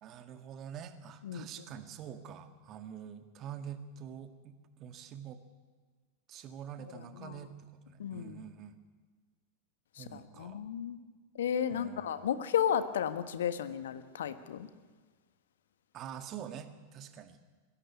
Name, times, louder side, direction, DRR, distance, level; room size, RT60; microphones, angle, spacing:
voice 1, 0.0-5.4 6.3-8.8 10.0-10.6 11.7-12.3 15.9-17.4, right 8 dB, 35° right, 9 dB, 1.9 m, -46 dB
voice 2, 8.0-8.4 10.0-11.0 11.4-14.7, left 9 dB, 60° left, 12 dB, 1.3 m, -33 dB
21.0 x 16.0 x 9.8 m, 1.4 s
figure-of-eight pair, 90°, 0 cm